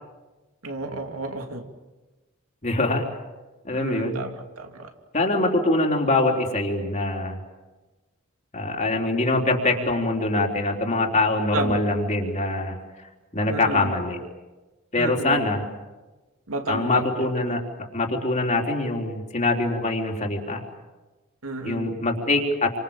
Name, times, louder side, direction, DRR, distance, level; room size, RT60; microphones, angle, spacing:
voice 1, 0.6-1.6 3.7-4.9 11.5-11.8 13.5-14.0 15.0-15.5 16.5-17.0 21.4-22.0, right 2 dB, 85° right, 4 dB, 3.0 m, -31 dB
voice 2, 2.6-3.0 3.6-4.2 5.1-7.4 8.5-12.8 13.3-14.2 14.9-15.6 16.7-17.6 17.9-20.6 21.6-22.7, left 2 dB, 35° left, 1 dB, 4.0 m, -23 dB
29.0 x 26.0 x 7.4 m, 1.2 s
head